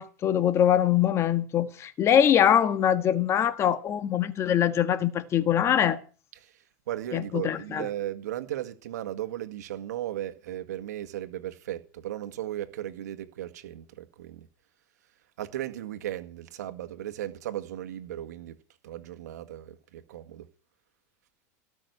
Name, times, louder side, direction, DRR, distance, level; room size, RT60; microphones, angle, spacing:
voice 1, 0.0-6.0 7.1-7.9, left 10 dB, 30° left, 1.5 m, -23 dB
voice 2, 6.9-14.5 15.4-18.6 18.8-20.5, right 13 dB, 85° right, 1.9 m, -36 dB
18.0 x 6.4 x 9.6 m
supercardioid pair, 135°, 9 cm